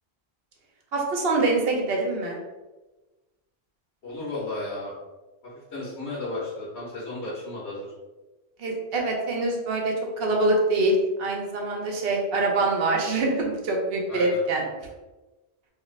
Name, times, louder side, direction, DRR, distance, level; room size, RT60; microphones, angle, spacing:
voice 1, 0.9-2.4 8.6-14.6, right 2 dB, 70° right, 0 dB, 0.9 m, -24 dB
voice 2, 4.0-4.9 5.7-7.9 14.1-14.4, left 2 dB, 90° left, -8 dB, 1.2 m, -33 dB
2.9 x 2.5 x 3.1 m, 1.1 s
omnidirectional pair, 1.1 m